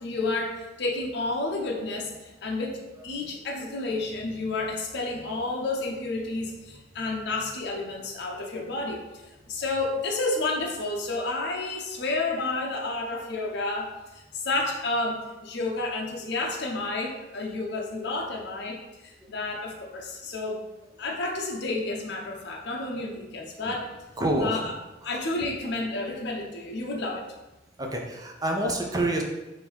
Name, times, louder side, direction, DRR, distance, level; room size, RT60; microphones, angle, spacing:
voice 1, 0.0-9.1 9.5-20.6 21.0-23.9 24.4-24.7 25.0-27.2, left 2 dB, 65° left, 0 dB, 0.6 m, -30 dB
voice 2, 24.2-24.6 25.1-25.2 27.8-29.2, right 1 dB, 20° right, 1 dB, 0.6 m, -27 dB
3.7 x 2.6 x 4.6 m, 1.0 s
head